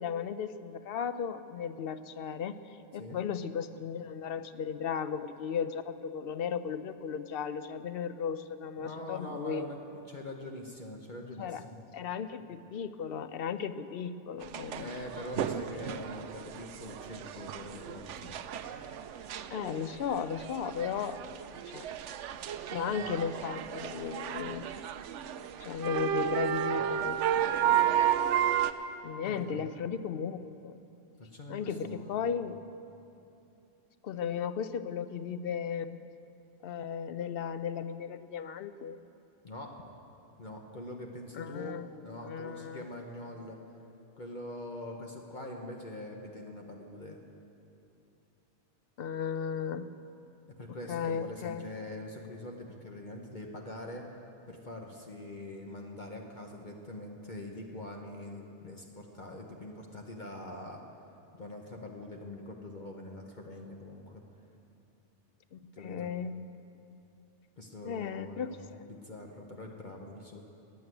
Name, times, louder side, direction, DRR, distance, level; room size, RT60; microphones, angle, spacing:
voice 1, 0.0-9.7 11.4-11.6 11.9-14.9 19.5-21.2 21.7-21.9 22.7-24.7 25.6-27.2 27.6-28.0 29.0-30.8 31.5-32.6 34.0-36.0 36.6-39.0 41.3-41.9 42.2-42.8 49.0-49.9 50.9-51.7 65.5-66.5 67.8-68.6, left 7 dB, 60° left, 12 dB, 0.8 m, -35 dB
voice 2, 8.8-11.8 14.7-18.4 23.0-23.1 29.2-29.6 31.2-32.2 39.4-39.7 40.4-43.6 44.2-47.2 50.5-54.1 54.5-60.8 61.3-64.2 65.7-66.1 67.6-68.6 68.9-70.4, left 1 dB, 40° left, 1 dB, 1.2 m, -43 dB
sound 1, 14.4-28.7, right 9 dB, 80° right, 0.9 m, -33 dB
14.5 x 9.5 x 9.2 m, 2.8 s
omnidirectional pair, 1.2 m